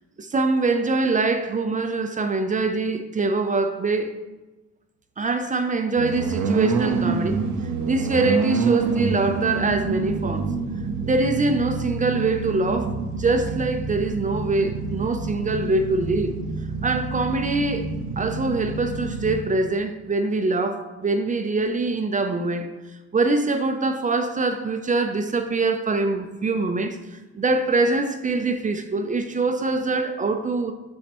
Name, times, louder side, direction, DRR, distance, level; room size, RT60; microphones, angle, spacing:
voice 1, 0.2-4.2 5.2-7.4 7.8-10.5 11.0-16.3 16.8-17.9 18.2-22.7 23.1-30.7, right 3 dB, 25° right, 0.5 m, -24 dB
sound 1, 6.0-19.4, right 4 dB, 75° right, 0.7 m, -27 dB
6.3 x 5.3 x 3.0 m
cardioid pair, 90°, 30 cm